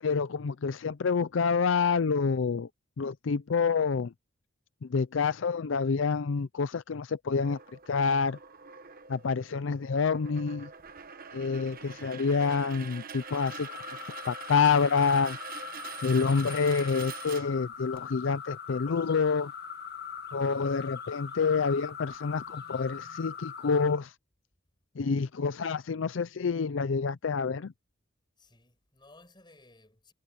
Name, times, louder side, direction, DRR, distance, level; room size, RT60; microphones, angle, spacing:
voice 1, 0.0-2.7 3.0-4.1 4.8-7.6 7.9-8.4 9.1-10.7 11.3-13.8 14.3-15.4 16.0-19.5 20.3-24.1 25.0-27.7, left 5 dB, 75° left, 0.5 m, -27 dB
sound 1, 7.4-18.0, right 6 dB, 50° right, 1.2 m, -45 dB
sound 2, 13.2-24.0, left 7 dB, 55° left, 1.8 m, -42 dB
voice 2, 20.0-20.4 28.4-30.1, left 2 dB, 25° left, 7.4 m, -59 dB
head